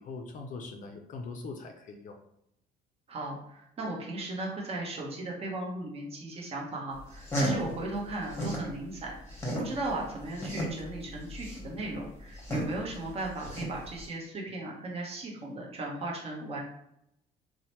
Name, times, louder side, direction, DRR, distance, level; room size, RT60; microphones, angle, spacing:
voice 1, 0.0-2.2, left 3 dB, 50° left, 4 dB, 0.4 m, -41 dB
voice 2, 3.1-16.6, right 2 dB, 35° right, -2 dB, 0.8 m, -37 dB
sound 1, 7.0-8.7 9.1-14.1, equal, 15° left, 1.0 m, -34 dB
2.8 x 2.0 x 2.9 m, 0.78 s
cardioid pair, 110°, 17 cm